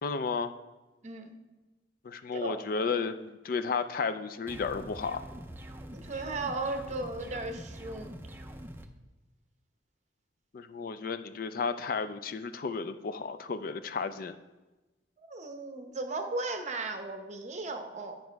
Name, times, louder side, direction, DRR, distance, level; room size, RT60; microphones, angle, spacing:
voice 1, 0.0-0.5 2.0-5.2 10.5-14.4, left 5 dB, 50° left, 10 dB, 0.4 m, -33 dB
voice 2, 1.0-1.4 2.3-2.6 5.9-8.2 15.2-18.2, right 2 dB, 40° right, 6 dB, 0.8 m, -36 dB
sound 1, 4.5-8.9, equal, 10° right, 0.5 m, -44 dB
9.3 x 5.2 x 4.6 m, 1.1 s
head